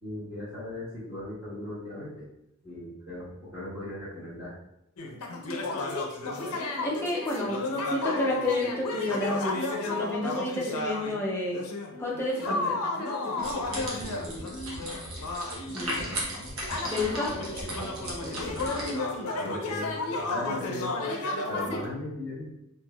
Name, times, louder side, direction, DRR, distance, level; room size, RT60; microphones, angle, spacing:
voice 1, 0.0-2.2 2.6-4.5 13.6-14.5 18.2-19.0 19.3-20.9 21.5-22.5, left 1 dB, 15° right, -15 dB, 1.3 m, -38 dB
sound 1, 5.0-11.2 11.5-21.8, left 2 dB, 90° left, 0.5 m, -33 dB
voice 2, 6.8-7.6 7.9-11.6 12.0-12.8 15.7-16.1 16.9-17.3, left 2 dB, 10° left, -4 dB, 0.6 m, -30 dB
sound 2, 13.4-18.9, right 1 dB, 65° right, 0.9 m, -36 dB
3.5 x 2.7 x 2.2 m, 0.81 s
head